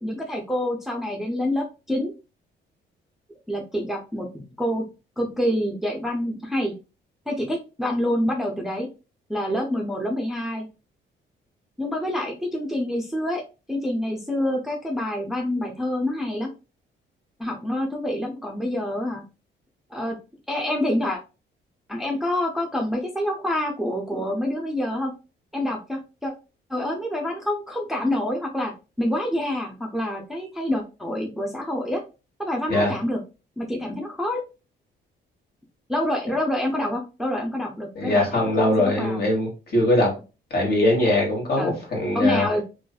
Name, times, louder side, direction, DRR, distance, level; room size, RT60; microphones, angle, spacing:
voice 1, 0.0-2.1 3.5-4.8 5.2-6.7 7.3-8.9 9.3-10.7 11.8-16.5 17.4-19.2 19.9-20.2 20.5-21.2 21.9-25.1 25.5-26.3 26.7-28.7 29.0-32.0 32.4-33.2 33.6-34.4 35.9-39.2 41.6-41.8 42.1-42.6, left 1 dB, ahead, 0 dB, 0.5 m, -27 dB
voice 2, 37.9-40.1 40.5-42.4, left 1 dB, 50° left, -1 dB, 1.3 m, -21 dB
2.5 x 2.3 x 2.3 m, 0.31 s
cardioid pair, 90°, 20 cm